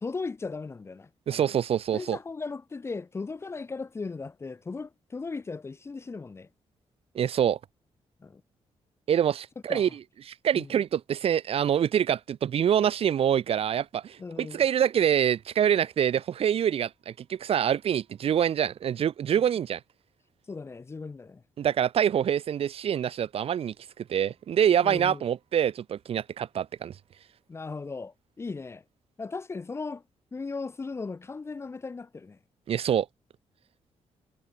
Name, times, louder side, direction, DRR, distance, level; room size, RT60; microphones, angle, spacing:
voice 1, 0.0-1.5 1.9-6.5 8.2-8.4 9.7-9.9 10.5-10.7 14.2-14.6 20.5-21.4 24.8-25.2 27.5-28.8 29.2-30.0 30.3-32.4, left 4 dB, 20° left, 1.5 m, -37 dB
voice 2, 1.3-2.2 7.1-7.6 9.1-10.0 10.3-19.8 21.6-26.9 32.7-33.1, right 9 dB, 55° right, 2.1 m, -25 dB
wide cardioid pair, 165°, 12 cm